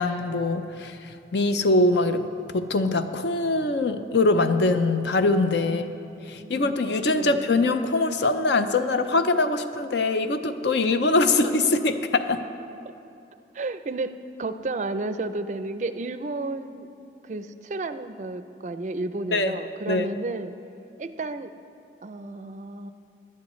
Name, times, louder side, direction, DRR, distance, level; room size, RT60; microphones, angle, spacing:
voice 1, 0.0-5.8 6.3-12.4 19.3-19.5 19.9-20.1, left 2 dB, 70° left, 9 dB, 0.6 m, -23 dB
voice 2, 5.6-6.0 6.3-6.8 7.2-7.5 12.8-12.9 13.5-16.9 17.2-20.5 21.0-21.5 22.0-22.9, right 2 dB, 40° right, 11 dB, 0.4 m, -32 dB
17.5 x 11.5 x 3.1 m, 2.7 s
head